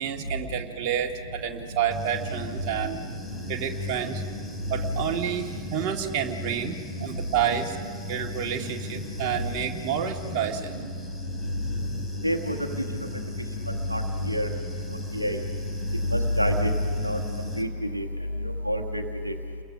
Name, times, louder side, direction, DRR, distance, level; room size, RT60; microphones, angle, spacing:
voice 1, 0.0-3.0 3.5-4.2 4.7-6.7 7.0-7.8 8.1-10.7, right 9 dB, 40° right, 2 dB, 1.9 m, -29 dB
Human voice / Buzz, 1.9-17.6, left 2 dB, 10° left, 3.1 m, -38 dB
voice 2, 12.2-12.6 13.9-14.0 14.3-14.5 15.1-15.4 16.1-16.7 17.0-17.2 17.6-17.7 17.9-18.0 18.6-19.3, equal, 85° right, 4 dB, 1.2 m, -26 dB
30.0 x 22.0 x 5.9 m, 2.2 s
figure-of-eight pair, 90°, 0 cm